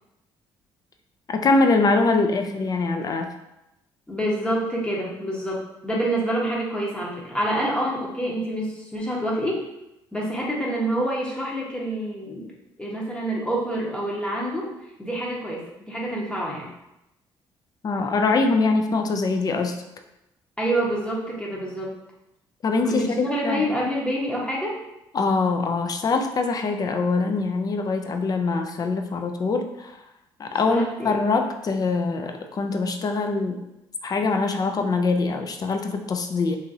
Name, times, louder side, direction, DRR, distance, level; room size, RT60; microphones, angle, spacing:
voice 1, 1.3-3.3 17.8-19.8 22.6-23.0 23.4-23.7 25.1-29.9 30.4-33.6 34.0-36.6, left 3 dB, 40° left, 6 dB, 0.4 m, -23 dB
voice 2, 4.1-9.6 10.1-12.5 12.8-14.7 15.0-16.7 20.6-21.9 22.8-24.8 30.7-31.3, right 1 dB, 10° left, -4 dB, 0.8 m, -27 dB
2.9 x 2.6 x 2.5 m, 0.90 s
supercardioid pair, 60°, 10 cm